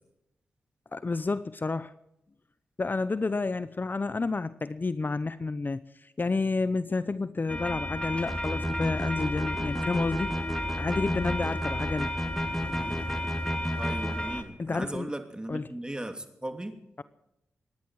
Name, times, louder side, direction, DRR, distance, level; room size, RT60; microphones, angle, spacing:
voice 1, 0.9-1.9 2.8-10.3 10.8-12.1 14.6-15.1 15.5-15.6, left 3 dB, 40° left, 15 dB, 0.7 m, -30 dB
sound 1, 7.5-14.4, left 1 dB, 20° left, 3.3 m, -33 dB
sound 2, 8.3-14.2, equal, ahead, 2.9 m, -33 dB
voice 2, 13.8-16.8, right 1 dB, 15° right, 7 dB, 2.8 m, -37 dB
26.5 x 10.5 x 4.7 m, 0.87 s
cardioid pair, 45°, 5 cm